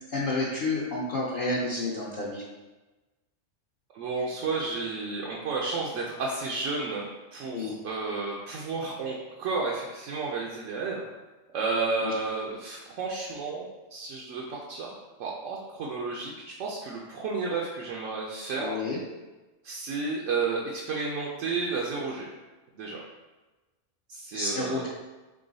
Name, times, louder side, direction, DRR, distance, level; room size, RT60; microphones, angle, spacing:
voice 1, 0.1-2.4 7.5-7.8 12.0-12.1 18.6-19.0 24.3-24.9, left 2 dB, 50° left, -6 dB, 0.7 m, -30 dB
voice 2, 3.9-7.0 7.3-11.1 11.5-14.9 15.2-18.8 19.6-22.3 22.8-23.0 24.1-24.9, right 4 dB, 80° right, -3 dB, 1.0 m, -32 dB
3.8 x 3.4 x 3.9 m, 1.2 s
omnidirectional pair, 1.3 m